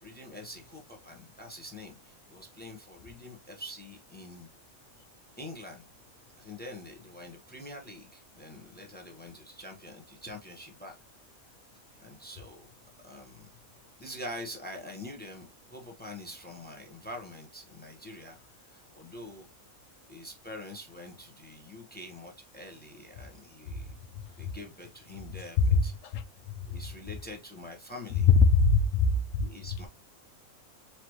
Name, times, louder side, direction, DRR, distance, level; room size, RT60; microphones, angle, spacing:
voice 1, 0.0-4.5 5.4-5.9 6.4-11.0 12.0-12.7 13.0-13.5 14.0-19.5 20.1-23.9 24.4-25.9 26.7-28.3 29.4-29.9, left 1 dB, 10° left, 0.9 m, -45 dB
voice 2, 28.2-29.5, left 4 dB, 65° left, 1.0 m, -21 dB
4.6 x 2.9 x 3.0 m
omnidirectional pair, 1.5 m